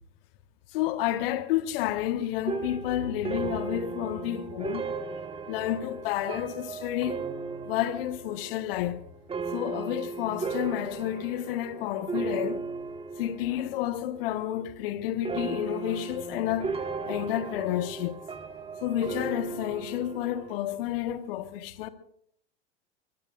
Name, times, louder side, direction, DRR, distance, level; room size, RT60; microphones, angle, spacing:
voice 1, 0.7-4.9 5.5-7.2 7.7-9.0 9.5-12.6 13.2-16.7 17.0-18.2 18.8-21.9, left 12 dB, 55° left, 1.4 m, -30 dB
sound 1, 2.5-13.9 14.2-14.8 15.2-20.6, right 4 dB, 15° right, 1.4 m, -36 dB
23.0 x 23.0 x 2.5 m
figure-of-eight pair, 85°, 34 cm